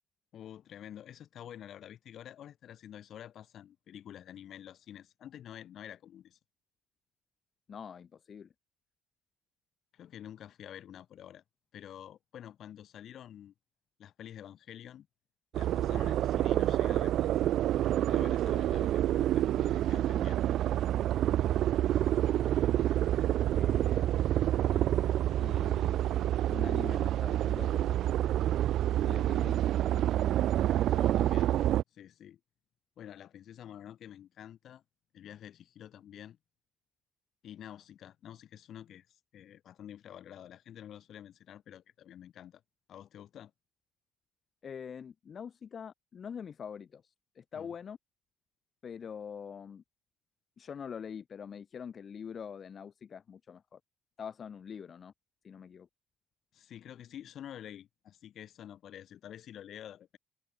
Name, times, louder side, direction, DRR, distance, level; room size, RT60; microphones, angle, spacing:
voice 1, 0.3-6.4 9.9-11.4 11.7-13.5 14.0-15.1 15.5-17.3 18.1-20.4 30.9-31.5 31.9-32.4 33.0-34.8 35.1-36.4 37.4-42.6 42.9-43.5 47.5-47.7 56.5-60.2, left 10 dB, 60° left, 3.2 m, -48 dB
voice 2, 7.7-8.5 22.3-22.5 23.0-23.1 23.5-25.0 25.4-28.2 28.9-30.0 44.6-48.0 48.8-49.8 50.6-53.8 54.2-55.1 55.4-55.9, left 7 dB, 45° left, 1.3 m, -45 dB
sound 1, 15.5-31.8, right 12 dB, 65° right, 0.4 m, -28 dB
supercardioid pair, 90°, 0 cm